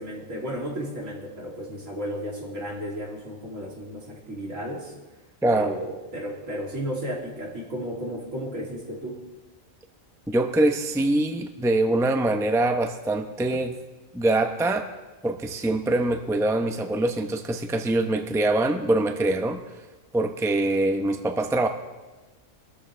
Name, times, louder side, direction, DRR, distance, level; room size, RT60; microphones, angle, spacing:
voice 1, 0.0-4.9 5.5-9.2, equal, 70° right, -3 dB, 3.5 m, -33 dB
voice 2, 5.4-5.7 10.3-13.8 14.1-14.9 15.2-19.6 20.1-21.7, right 2 dB, 5° right, 6 dB, 0.6 m, -24 dB
23.5 x 13.5 x 3.4 m, 1.2 s
omnidirectional pair, 1.4 m